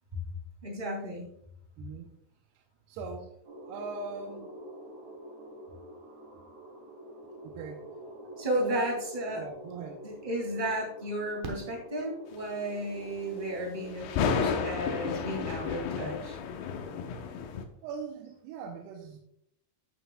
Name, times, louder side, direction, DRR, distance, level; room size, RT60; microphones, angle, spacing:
voice 1, 0.6-1.3 8.4-9.4 10.0-16.4, right 1 dB, 20° right, -1 dB, 1.2 m, -33 dB
voice 2, 1.8-2.1 2.9-3.3 3.7-4.5 7.4-7.9 8.6-8.9 9.4-10.0 17.8-19.2, right 5 dB, 85° right, 3 dB, 2.7 m, -41 dB
sound 1, 3.4-14.7, right 1 dB, 45° right, 3.4 m, -47 dB
Fireworks, 11.4-12.7 14.5-14.6 14.8-14.9, right 2 dB, 65° right, 2.2 m, -44 dB
sound 2, 13.9-17.6, left 6 dB, 80° left, 2.8 m, -32 dB
14.0 x 6.2 x 2.2 m, 0.72 s
omnidirectional pair, 4.6 m